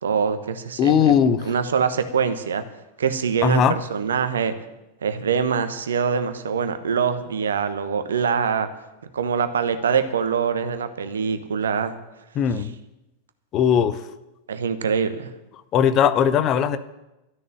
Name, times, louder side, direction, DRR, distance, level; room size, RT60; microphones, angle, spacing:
voice 1, 0.0-1.1 1.4-2.6 3.0-4.5 5.0-8.7 9.1-11.9 14.5-15.3, right 6 dB, 65° right, 10 dB, 1.2 m, -24 dB
voice 2, 0.8-1.5 3.4-3.7 12.4-12.7 13.5-14.0 15.7-16.8, left 8 dB, 35° left, 12 dB, 0.9 m, -19 dB
13.0 x 6.8 x 10.0 m, 0.96 s
figure-of-eight pair, 90°, 0 cm